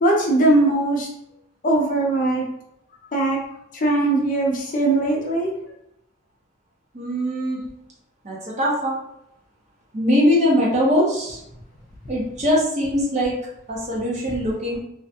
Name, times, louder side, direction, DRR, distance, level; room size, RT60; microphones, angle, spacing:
voice 1, 0.0-1.1 1.6-2.4 3.1-3.4 3.7-5.5, right 2 dB, 40° left, -2 dB, 0.5 m, -20 dB
voice 2, 6.9-7.6 8.2-9.0 9.9-11.4 12.1-13.3 13.7-14.8, equal, 35° right, -4 dB, 0.7 m, -21 dB
2.4 x 2.2 x 2.7 m, 0.81 s
head